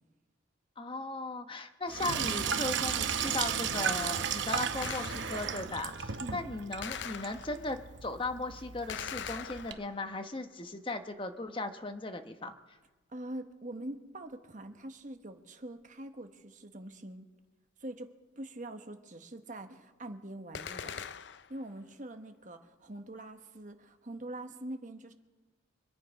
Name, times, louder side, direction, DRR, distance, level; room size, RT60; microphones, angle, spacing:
voice 1, 0.8-12.5, left 2 dB, 25° left, 7 dB, 1.0 m, -37 dB
Sink (filling or washing), 1.9-9.7, right 7 dB, 65° right, 0.9 m, -35 dB
Gunshot gunfire, 4.8-5.6 6.8-7.8 8.9-10.2 20.5-21.6, left 7 dB, 60° left, 0.5 m, -42 dB
voice 2, 13.1-17.3 17.8-18.1 18.4-21.0 21.5-25.1, right 1 dB, 40° right, 7 dB, 1.1 m, -44 dB
25.0 x 9.4 x 5.2 m, 1.2 s
head